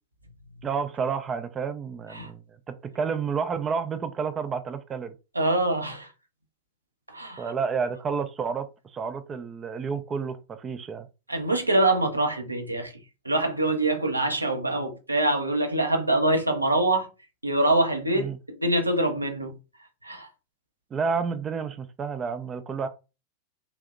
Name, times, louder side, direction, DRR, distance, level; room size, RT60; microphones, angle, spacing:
voice 1, 0.6-2.4 2.7-5.1 7.4-11.1 18.1-18.4 20.9-22.9, right 5 dB, 25° right, 0.3 m, -30 dB
voice 2, 5.3-6.1 7.1-7.5 11.3-12.9 13.2-17.1 17.4-19.5 20.0-20.3, right 2 dB, 85° right, 0.7 m, -24 dB
3.4 x 2.6 x 2.4 m
figure-of-eight pair, 90°, 0 cm